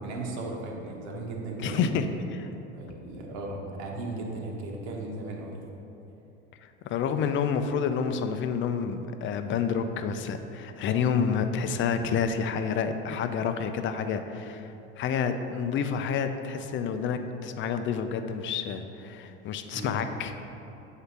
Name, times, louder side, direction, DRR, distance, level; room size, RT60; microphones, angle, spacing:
voice 1, 0.0-1.9 2.7-5.6 19.7-19.9, right 2 dB, 70° right, -1 dB, 1.2 m, -36 dB
voice 2, 1.6-2.1 2.4-2.5 6.6-20.3, left 6 dB, 35° left, 8 dB, 0.5 m, -29 dB
7.8 x 2.8 x 6.0 m, 2.9 s
hypercardioid pair, 85°, 34 cm